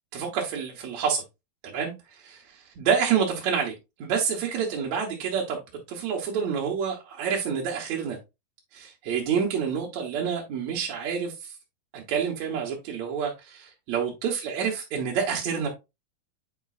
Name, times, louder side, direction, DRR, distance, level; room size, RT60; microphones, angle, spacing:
voice 1, 0.1-1.2 1.6-1.9 2.2-3.7 4.0-5.6 5.9-8.2 8.7-11.6 11.9-15.7, right 7 dB, 65° right, 2.1 m, -28 dB
8.2 x 5.3 x 2.4 m
omnidirectional pair, 4.0 m